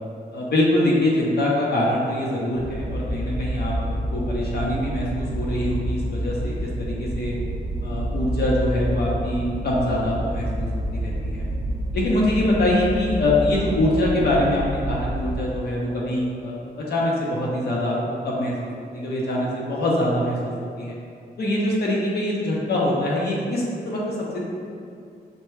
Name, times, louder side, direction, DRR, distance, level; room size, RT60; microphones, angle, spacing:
voice 1, 0.3-7.4 7.8-10.7 10.9-11.4 11.9-18.0 18.2-18.5 18.9-20.4 20.8-20.9 21.4-24.4, left 1 dB, 75° left, -4 dB, 0.9 m, -24 dB
sound 1, 2.5-15.3, right 1 dB, 45° left, 1.2 m, -28 dB
5.7 x 2.3 x 3.2 m, 2.4 s
wide cardioid pair, 145°, 17 cm